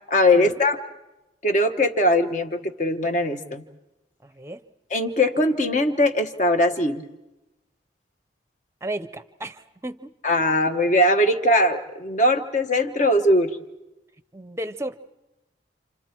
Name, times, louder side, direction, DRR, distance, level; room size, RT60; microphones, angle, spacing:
voice 1, 0.1-0.8 1.4-3.6 4.9-7.0 10.2-13.6, left 1 dB, 40° left, 6 dB, 1.3 m, -20 dB
voice 2, 4.2-4.6 8.8-10.2 14.3-15.0, right 1 dB, 15° right, 12 dB, 0.7 m, -34 dB
28.5 x 28.0 x 4.6 m, 1.0 s
head